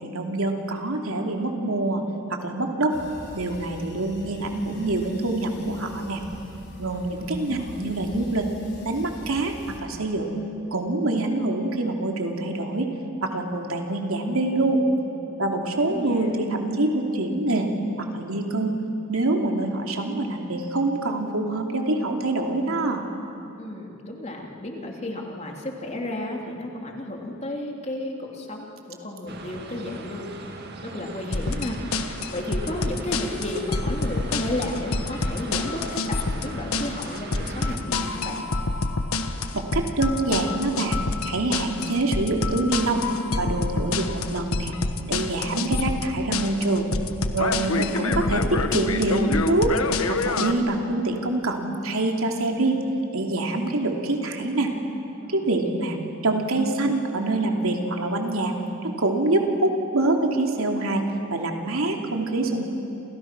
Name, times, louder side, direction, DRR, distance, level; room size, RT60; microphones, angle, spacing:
voice 1, 0.0-2.0 2.3-3.0 3.3-6.2 6.8-8.5 8.8-9.5 9.8-10.3 10.7-12.9 13.2-14.8 15.4-17.7 18.0-18.7 19.1-23.1 39.5-41.0 41.2-43.0 43.4-44.7 45.1-46.9 47.3-49.7 50.1-52.8 53.1-54.7 55.3-56.0 56.2-58.5 58.8-61.0 61.3-62.7, right 2 dB, 85° right, 2 dB, 3.0 m, -25 dB
sound 1, 2.9-9.8, left 1 dB, 50° left, 4.5 m, -43 dB
voice 2, 6.9-7.7 15.3-15.6 15.8-16.3 23.6-30.3 30.9-31.8 32.3-38.4 45.5-45.6 55.2-55.4, left 1 dB, 30° left, 0 dB, 3.1 m, -33 dB
sound 2, 29.3-37.8, right 2 dB, 50° right, 2.0 m, -39 dB
sound 3, 31.3-50.5, left 3 dB, 85° left, 1.4 m, -27 dB
29.5 x 29.0 x 6.2 m, 2.8 s
head